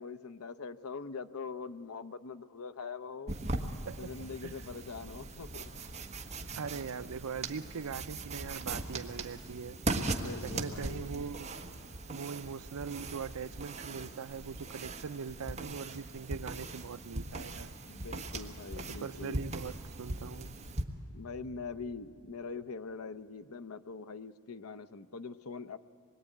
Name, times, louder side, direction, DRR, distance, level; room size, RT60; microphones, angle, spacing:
voice 1, 0.0-3.3 4.0-5.7 10.1-11.1 17.9-19.5 21.1-25.8, left 4 dB, 75° left, 12 dB, 0.7 m, -43 dB
sound 1, 3.3-20.8, right 2 dB, 30° right, 1.3 m, -40 dB
voice 2, 6.6-9.8 10.4-11.6 12.1-17.7 18.7-20.6, right 6 dB, 85° right, 14 dB, 0.5 m, -41 dB
26.0 x 21.5 x 9.2 m, 2.5 s
head